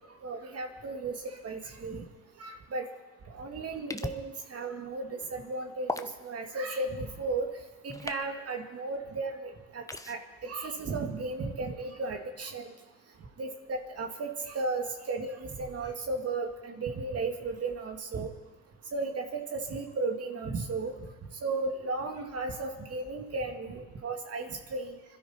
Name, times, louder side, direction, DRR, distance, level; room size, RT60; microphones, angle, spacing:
voice 1, 0.2-2.0 2.4-2.9 3.3-7.5 7.8-12.7 13.4-18.3 18.9-20.9 21.4-25.0, right 3 dB, 50° right, 4 dB, 2.3 m, -35 dB
sound 1, 3.9-4.2 5.9-6.1 7.9-8.2 9.9-10.1, left 2 dB, 10° left, 0.9 m, -35 dB
25.0 x 12.5 x 4.4 m, 1.3 s
cardioid pair, 90°, 30 cm